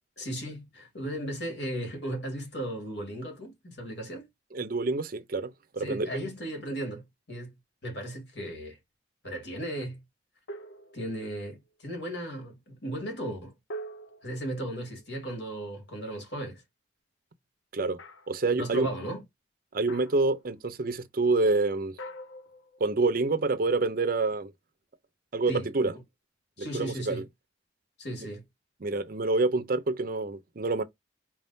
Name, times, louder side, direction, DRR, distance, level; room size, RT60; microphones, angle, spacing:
voice 1, 0.2-4.3 5.8-7.0 7.3-7.5 7.8-8.8 9.2-10.0 10.9-13.5 14.2-16.6 18.6-19.2 25.5-25.9 26.6-27.3 28.0-28.4, right 1 dB, 65° left, 2.1 m, -36 dB
voice 2, 4.5-6.1 17.7-18.0 18.3-18.9 19.7-22.0 22.8-24.5 25.3-25.9 26.7-27.2 28.8-30.8, right 3 dB, 50° right, 0.6 m, -27 dB
sound 1, 10.5-11.4 13.7-15.4 18.0-18.5 19.9-20.4 22.0-23.2, right 1 dB, 85° left, 0.6 m, -44 dB
4.7 x 3.5 x 2.7 m
head